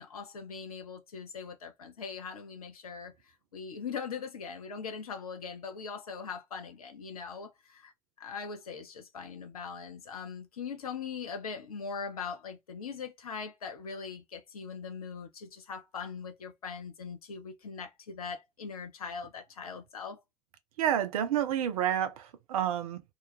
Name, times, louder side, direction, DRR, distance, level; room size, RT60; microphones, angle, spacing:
voice 1, 0.0-3.1 3.5-7.9 8.2-20.2, left 5 dB, 85° left, 0.5 m, -41 dB
voice 2, 20.8-23.0, right 10 dB, 75° right, 0.4 m, -29 dB
2.3 x 2.2 x 2.7 m
figure-of-eight pair, 45°, 18 cm